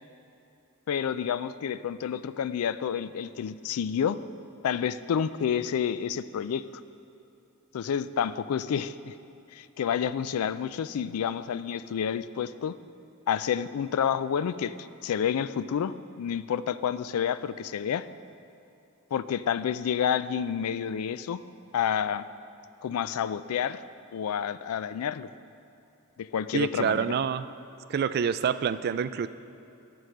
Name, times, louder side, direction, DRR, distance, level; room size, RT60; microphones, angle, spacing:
voice 1, 0.9-4.2 4.6-6.8 7.7-9.1 9.5-12.7 13.3-14.7 15.0-18.1 19.1-21.4 21.7-22.3 22.8-23.8 24.1-25.3 26.2-27.2, left 8 dB, 80° left, 14 dB, 0.3 m, -29 dB
voice 2, 26.5-27.5 27.9-29.3, right 7 dB, 45° right, 14 dB, 0.3 m, -27 dB
12.5 x 4.8 x 6.4 m, 2.8 s
head